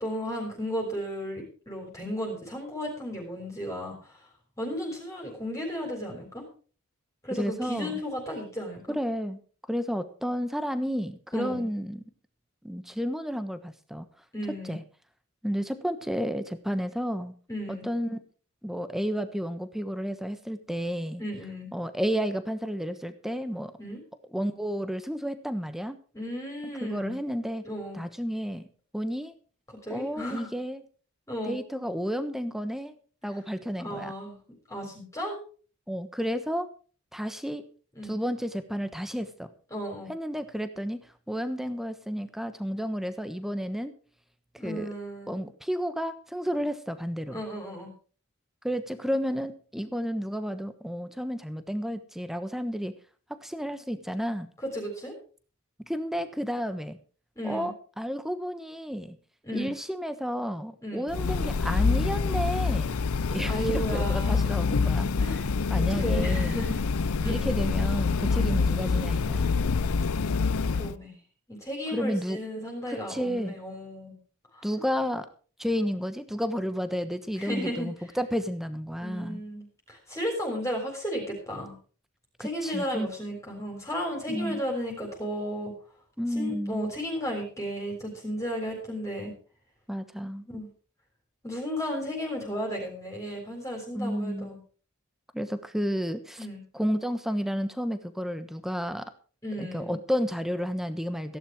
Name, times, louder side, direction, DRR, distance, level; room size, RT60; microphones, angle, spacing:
voice 1, 0.0-4.3 4.6-6.5 7.2-9.0 11.3-11.7 14.3-14.8 17.5-17.9 21.2-21.7 23.8-24.0 26.1-27.2 27.6-28.0 29.7-30.5 31.3-31.6 33.8-34.4 34.7-35.4 38.0-38.2 39.7-40.1 44.6-45.3 47.3-47.9 54.6-55.2 57.4-57.7 59.4-59.7 60.8-61.1 63.5-64.5 65.1-65.5 65.8-66.8 67.2-67.5 70.7-71.2 71.5-74.2 74.5-74.7 75.8-75.9 77.4-77.9 79.0-81.8 82.4-85.7 86.3-89.3 90.5-90.7 91.4-94.6 96.4-96.6 99.4-100.0, equal, 15° left, 0 dB, 3.8 m, -34 dB
voice 2, 7.3-8.0 8.9-9.4 9.7-12.0 12.6-14.1 14.6-14.8 15.4-17.3 17.7-18.2 18.6-21.2 21.7-23.7 24.3-26.0 26.8-27.6 27.9-28.7 28.9-29.3 29.9-30.8 31.5-32.9 33.2-34.1 35.9-36.7 37.1-37.6 38.0-39.5 40.1-41.0 41.3-43.9 44.6-44.9 45.3-47.4 48.6-52.9 53.3-54.5 55.9-57.0 57.4-59.2 59.5-63.0 63.3-65.1 65.7-66.6 67.2-69.5 71.9-72.4 72.9-73.6 74.6-75.3 75.6-79.4 82.4-83.1 84.3-84.6 86.2-86.9 89.9-90.4 93.9-94.5 95.3-96.5 96.7-99.1 99.6-101.4, equal, ahead, 11 dB, 1.1 m, -31 dB
sound 1, 61.1-70.9, left 4 dB, 85° left, 0.6 m, -26 dB
15.5 x 11.0 x 4.8 m, 0.40 s
head